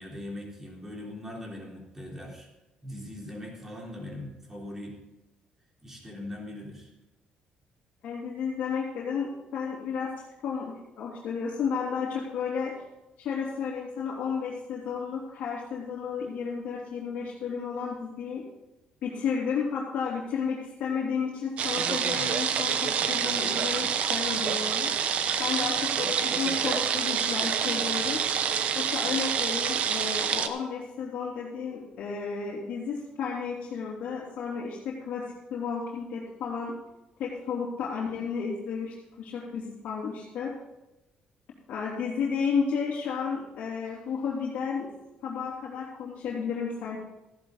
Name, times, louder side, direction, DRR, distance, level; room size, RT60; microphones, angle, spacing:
voice 1, 0.0-2.5 2.8-5.0 5.8-6.9 22.1-22.3, left 1 dB, 15° right, -1 dB, 3.5 m, -40 dB
voice 2, 8.0-10.1 10.4-12.7 13.2-18.4 19.0-28.2 28.7-36.7 37.2-40.5 41.7-44.9 45.2-47.0, left 6 dB, 65° left, -6 dB, 2.8 m, -32 dB
sound 1, 21.6-30.5, right 7 dB, 55° right, 0.9 m, -27 dB
14.5 x 11.0 x 3.9 m, 1.0 s
cardioid pair, 140°, 3 cm